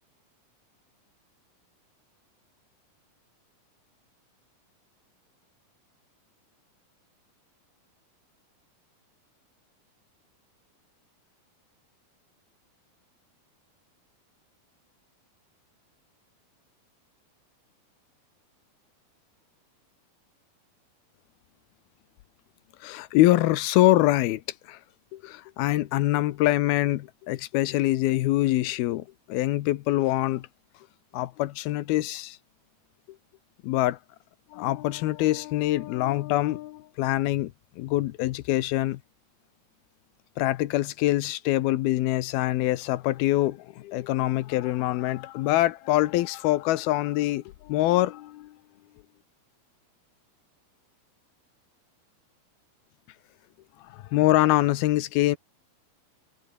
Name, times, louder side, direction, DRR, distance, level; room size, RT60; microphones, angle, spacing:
voice 1, 22.8-24.4 24.7-24.8 25.1-30.5 31.1-32.4 33.6-34.0 34.5-39.0 40.4-48.6 53.9-55.4, left 16 dB, 90° left, 2.8 m, -24 dB
omnidirectional pair, 4.3 m